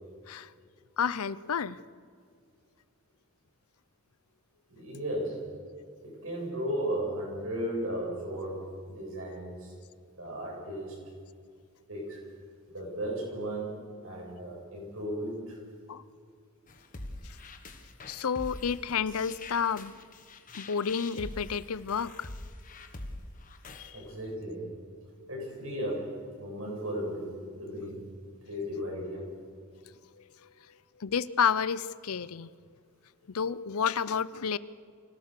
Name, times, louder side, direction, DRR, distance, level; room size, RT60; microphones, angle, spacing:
voice 1, 1.0-1.8 15.9-16.0 18.1-19.9 20.5-22.3 23.7-24.0 31.0-32.5 33.3-34.6, left 6 dB, 85° left, 18 dB, 0.6 m, -30 dB
voice 2, 4.7-5.5 6.0-9.7 10.2-11.1 11.9-12.2 12.7-15.6 23.9-24.7 25.3-28.0 28.4-29.3, right 1 dB, 70° right, -2 dB, 7.7 m, -35 dB
sound 1, 16.7-23.9, left 2 dB, 35° left, 1.4 m, -44 dB
25.0 x 17.0 x 6.8 m, 2.1 s
head